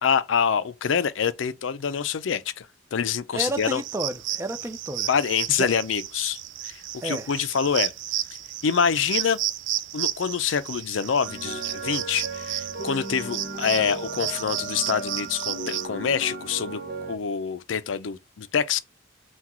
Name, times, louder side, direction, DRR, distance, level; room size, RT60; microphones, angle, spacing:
voice 1, 0.0-3.8 5.1-6.7 7.0-7.9 8.6-9.4 9.9-16.8 17.1-18.8, left 7 dB, 80° left, 0.5 m, -26 dB
voice 2, 3.3-5.1 5.5-5.7 7.0-7.3, right 1 dB, 15° right, 0.5 m, -31 dB
sound 1, 3.4-15.9, right 13 dB, 70° right, 0.4 m, -33 dB
sound 2, 11.2-17.2, right 2 dB, 50° right, 0.9 m, -35 dB
5.8 x 2.3 x 3.0 m
head